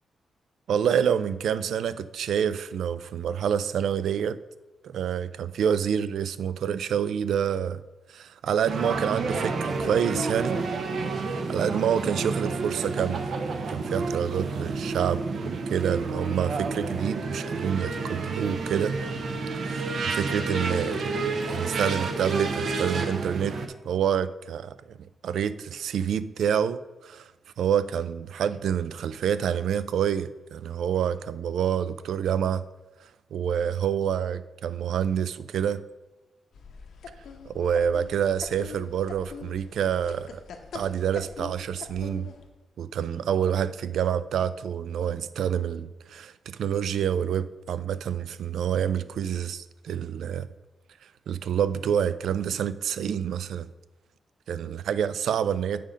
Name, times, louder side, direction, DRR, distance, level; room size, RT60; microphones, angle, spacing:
voice 1, 0.7-4.4 4.8-7.8 8.1-10.6 11.5-19.0 19.6-23.6 23.8-24.7 25.2-27.3 27.6-32.6 33.3-35.8 37.5-40.4 40.7-42.3 42.8-50.5 51.3-53.7 54.5-55.8, right 8 dB, 80° right, 0.3 m, -27 dB
sound 1, 8.7-23.7, right 3 dB, 55° right, 0.7 m, -30 dB
sound 2, 36.5-42.5, left 5 dB, 75° left, 0.7 m, -43 dB
7.6 x 5.1 x 5.1 m
wide cardioid pair, 170°, 0 cm